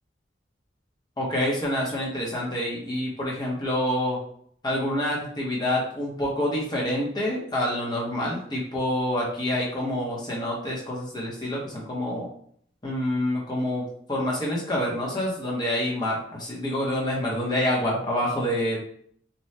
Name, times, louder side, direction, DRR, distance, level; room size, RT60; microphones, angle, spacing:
voice 1, 1.2-4.2 4.6-12.3 12.8-18.8, left 1 dB, 20° left, -3 dB, 0.7 m, -27 dB
2.7 x 2.2 x 3.1 m, 0.62 s
head